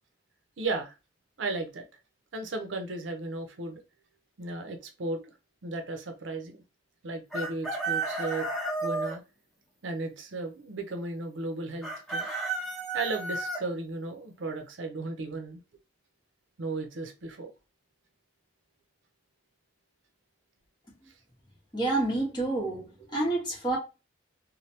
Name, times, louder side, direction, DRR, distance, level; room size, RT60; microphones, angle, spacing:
voice 1, 0.6-0.9 1.4-1.8 2.3-3.8 4.4-5.2 5.6-6.6 7.0-8.5 8.8-9.2 9.8-12.3 12.9-15.6 16.6-17.5, right 3 dB, 90° right, 0.6 m, -35 dB
Chicken rooster, 7.3-9.2 11.8-13.6, right 3 dB, ahead, 0.8 m, -32 dB
voice 2, 21.7-23.8, right 2 dB, 25° left, 1.3 m, -28 dB
3.2 x 2.2 x 2.7 m
head